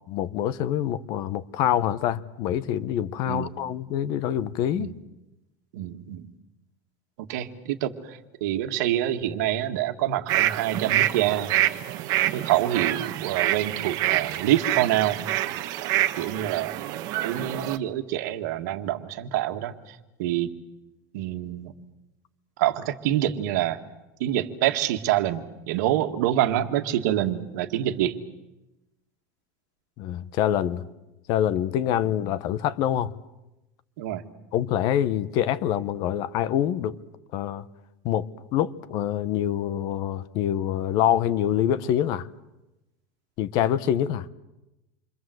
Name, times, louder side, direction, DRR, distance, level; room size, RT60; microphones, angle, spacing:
voice 1, 0.1-4.9 30.0-30.8 31.3-33.1 34.5-37.0 37.3-37.6 38.0-42.3 43.4-44.3, left 11 dB, 45° left, 1.0 m, -25 dB
voice 2, 5.7-6.2 7.3-11.5 12.3-15.2 15.8-16.7 17.2-20.5 21.1-21.7 22.6-23.8 24.2-28.2 34.0-34.2, right 12 dB, 70° right, 1.9 m, -26 dB
sound 1, 10.3-17.8, right 14 dB, 40° right, 1.3 m, -27 dB
28.0 x 24.5 x 7.9 m
supercardioid pair, 170°, 10 cm